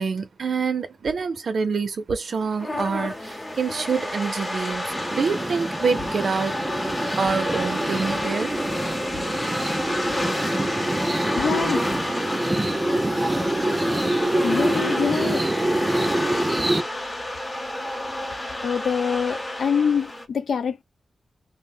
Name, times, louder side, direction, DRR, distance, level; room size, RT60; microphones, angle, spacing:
voice 1, 0.0-6.6 7.2-8.5, right 5 dB, 65° right, 0.6 m, -26 dB
sound 1, 2.3-20.3, left 1 dB, 20° left, 0.7 m, -29 dB
sound 2, 4.9-16.8, right 1 dB, 20° right, 0.5 m, -26 dB
voice 2, 11.3-11.9 14.4-15.4 18.3-20.8, left 7 dB, 85° left, 0.3 m, -25 dB
2.4 x 2.1 x 3.5 m
wide cardioid pair, 155°, 0 cm